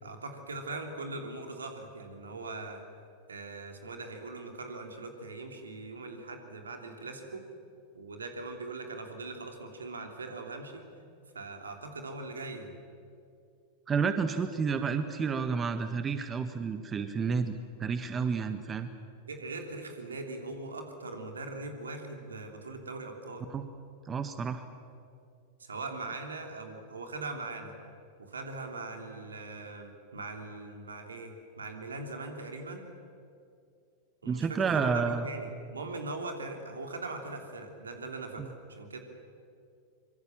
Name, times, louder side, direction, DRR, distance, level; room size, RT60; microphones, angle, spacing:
voice 1, 0.0-2.8 3.3-7.4 7.9-10.9 11.3-12.8 19.3-23.5 25.6-27.7 28.2-32.8 34.2-39.0, right 3 dB, 75° right, 4 dB, 3.3 m, -41 dB
voice 2, 13.9-18.9 23.5-23.6 24.0-24.6 34.2-35.3 38.4-38.5, right 5 dB, 25° right, 9 dB, 1.4 m, -30 dB
25.0 x 24.0 x 7.4 m, 2.4 s
figure-of-eight pair, 90°, 0 cm